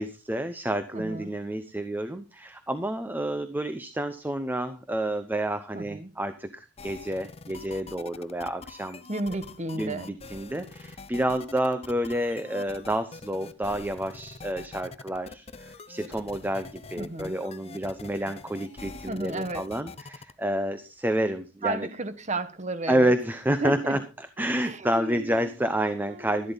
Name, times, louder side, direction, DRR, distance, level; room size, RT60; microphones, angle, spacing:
voice 1, 0.0-9.0 9.8-21.9 22.9-26.5, right 1 dB, 10° right, 0.8 m, -29 dB
voice 2, 0.9-1.3 5.7-6.2 9.1-10.2 17.0-17.4 19.1-19.7 21.6-23.1 23.6-24.0 24.6-25.3 26.1-26.5, right 2 dB, 40° right, 1.2 m, -33 dB
sound 1, 6.8-20.3, left 3 dB, 30° left, 0.7 m, -44 dB
13.0 x 12.0 x 4.0 m
head